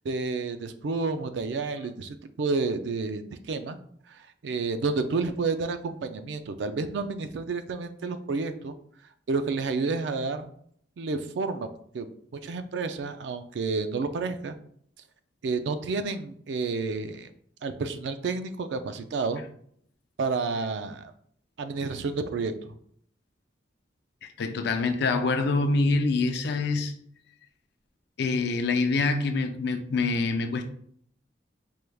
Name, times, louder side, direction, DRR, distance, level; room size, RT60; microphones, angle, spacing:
voice 1, 0.0-3.8 4.1-8.7 9.3-10.5 11.0-11.7 11.9-14.6 15.4-17.3 17.6-19.4 20.2-21.1 21.6-22.7, right 4 dB, 70° right, 0.4 m, -30 dB
voice 2, 24.4-26.9 28.2-30.7, left 3 dB, 65° left, 0.4 m, -25 dB
4.5 x 3.3 x 2.3 m
head